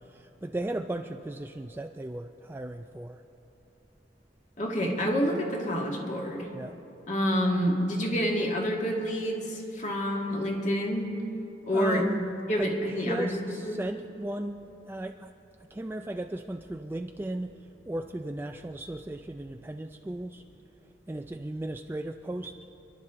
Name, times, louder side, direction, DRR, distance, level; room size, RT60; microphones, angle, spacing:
voice 1, 0.0-3.2 6.5-6.8 11.7-12.3 12.6-12.7 13.0-14.6 14.9-15.3 15.7-17.5 17.9-20.4 21.1-22.6, right 1 dB, 10° right, 5 dB, 0.3 m, -36 dB
voice 2, 4.6-6.5 7.1-11.1 11.7-12.0 12.5-13.3 13.6-13.8, equal, 45° left, -1 dB, 2.0 m, -28 dB
27.0 x 11.5 x 3.7 m, 3.0 s
head